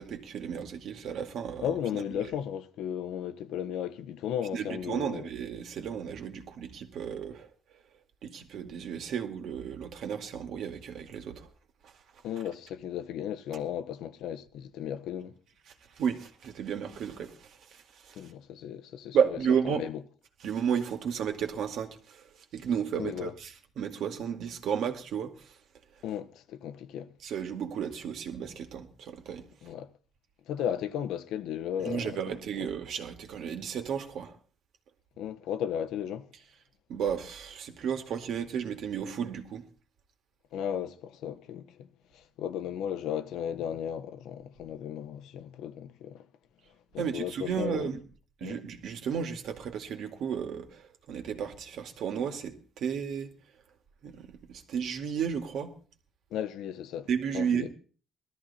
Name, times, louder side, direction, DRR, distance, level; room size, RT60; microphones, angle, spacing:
voice 1, 0.0-1.8 2.2-2.3 4.5-7.5 8.2-11.5 11.8-11.9 16.0-18.2 19.1-19.8 20.4-23.5 23.8-25.5 27.2-29.5 31.8-34.4 36.9-39.6 47.0-48.0 48.4-53.3 54.0-55.7 57.1-57.7, right 7 dB, 70° right, 2.2 m, -33 dB
voice 2, 1.6-5.3 12.2-15.3 18.1-19.2 19.6-20.0 23.0-23.3 26.0-27.1 29.6-29.9 30.5-32.2 35.2-36.3 40.5-41.9 42.1-46.3 46.9-47.9 48.4-48.6 56.3-57.1 57.3-57.7, left 9 dB, 90° left, 1.1 m, -35 dB
19.5 x 13.5 x 4.2 m
cardioid pair, 135°, 0 cm